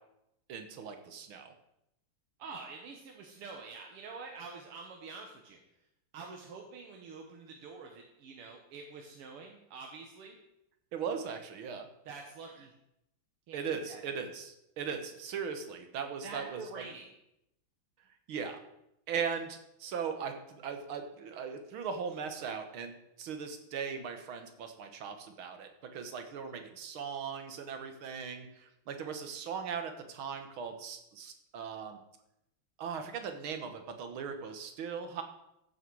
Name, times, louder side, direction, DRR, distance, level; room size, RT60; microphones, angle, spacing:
voice 1, 0.5-1.5 10.9-11.9 13.5-16.8 18.3-18.6 19.1-32.0 32.8-35.2, right 6 dB, 70° right, 6 dB, 2.1 m, -39 dB
voice 2, 2.4-5.6 6.1-10.4 12.1-12.7 13.5-14.0 16.2-17.1, right 4 dB, 85° right, 2 dB, 2.1 m, -46 dB
14.5 x 8.0 x 4.7 m, 0.83 s
omnidirectional pair, 2.4 m